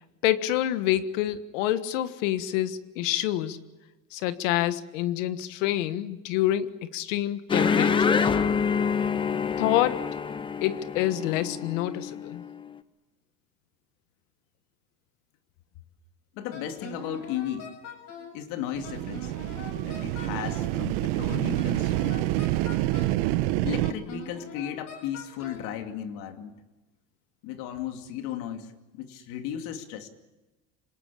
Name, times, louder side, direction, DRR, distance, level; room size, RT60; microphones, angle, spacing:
voice 1, 0.2-3.6 4.1-8.3 9.6-10.1 10.6-12.4, left 13 dB, 90° left, 1.6 m, -27 dB
sound 1, 7.5-12.5, left 6 dB, 15° left, 0.8 m, -26 dB
voice 2, 16.3-17.7 18.3-19.3 19.8-22.2 23.6-26.5 27.4-30.1, left 10 dB, 60° left, 2.7 m, -35 dB
Wind instrument woodwind instrument, 16.5-18.4 18.8-20.8 21.3-23.3 23.8-25.7, left 3 dB, 45° left, 7.1 m, -43 dB
sound 2, 18.7-23.9, right 16 dB, 70° right, 1.2 m, -27 dB
26.5 x 19.0 x 8.5 m
cardioid pair, 160°, 37 cm